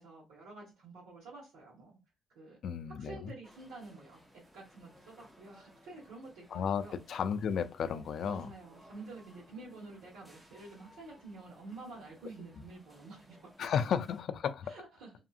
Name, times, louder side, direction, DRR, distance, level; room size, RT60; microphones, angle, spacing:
voice 1, 0.0-1.9 2.3-2.6 2.9-4.2 4.5-7.0 7.9-13.4 14.6-15.1, right 3 dB, 90° right, 1.3 m, -49 dB
voice 2, 2.6-3.3 6.5-8.5 13.6-14.7, left 7 dB, 65° left, 0.3 m, -33 dB
sound 1, 3.4-14.2, equal, 5° right, 0.8 m, -61 dB
2.7 x 2.6 x 2.4 m
cardioid pair, 90°, 0 cm